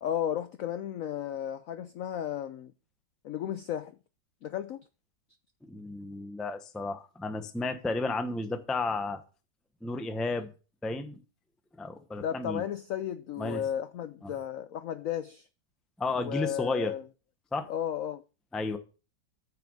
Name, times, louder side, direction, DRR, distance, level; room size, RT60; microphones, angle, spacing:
voice 1, 0.0-2.7 3.2-3.9 4.4-4.8 12.2-15.5 16.1-17.0 17.7-18.2, left 10 dB, 75° left, 0.7 m, -34 dB
voice 2, 5.6-9.2 9.8-10.5 10.8-11.2 11.8-12.6 13.4-13.6 14.2-14.3 16.0-16.9 17.5-17.7 18.5-18.8, left 3 dB, ahead, 0.4 m, -32 dB
9.1 x 5.8 x 6.4 m
omnidirectional pair, 2.0 m